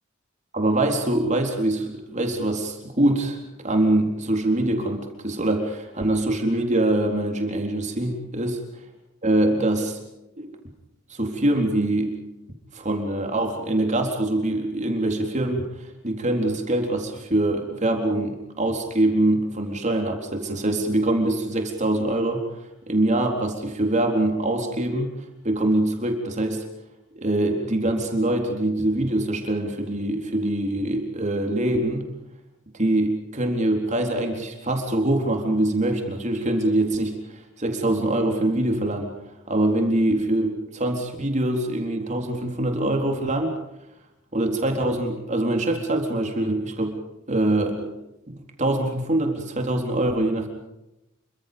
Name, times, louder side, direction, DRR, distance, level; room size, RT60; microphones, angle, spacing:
voice 1, 0.5-3.4 3.6-8.6 9.2-10.0 10.4-10.5 11.1-12.1 12.7-15.7 16.0-22.4 22.9-25.1 25.4-26.6 27.2-32.1 32.7-37.2 37.6-39.1 39.5-43.5 44.3-47.0 47.3-47.9 48.3-50.5, right 1 dB, 35° right, 3 dB, 4.1 m, -24 dB
29.0 x 25.0 x 5.3 m, 0.92 s
head